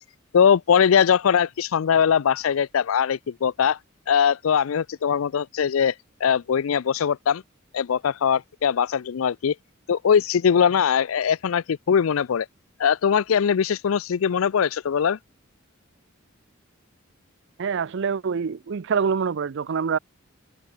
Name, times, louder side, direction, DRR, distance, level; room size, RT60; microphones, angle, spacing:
voice 1, 0.3-3.8 4.1-5.9 6.2-7.4 7.7-9.6 9.9-12.5 12.8-15.2, left 7 dB, 80° left, 0.4 m, -21 dB
voice 2, 17.6-20.0, right 6 dB, 60° right, 0.5 m, -25 dB
head